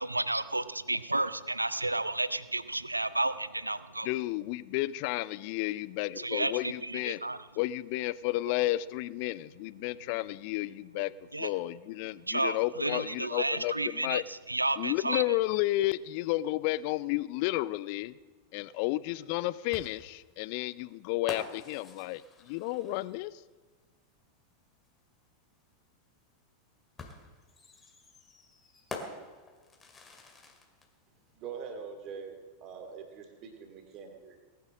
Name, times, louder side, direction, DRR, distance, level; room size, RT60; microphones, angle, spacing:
voice 1, 0.0-4.1 6.2-7.4 11.3-11.5 12.3-15.2, right 2 dB, 85° right, 16 dB, 0.5 m, -32 dB
voice 2, 4.0-7.2 7.6-11.1 11.4-14.2 14.8-18.1 18.5-23.4, left 17 dB, 45° left, 20 dB, 0.4 m, -32 dB
sound 1, 19.7-23.4 24.8-24.9 27.0-30.9, left 3 dB, 15° left, 2.2 m, -46 dB
voice 3, 31.4-34.4, right 6 dB, 35° right, 5 dB, 2.3 m, -43 dB
19.0 x 10.5 x 6.1 m, 1.3 s
figure-of-eight pair, 90°, 0 cm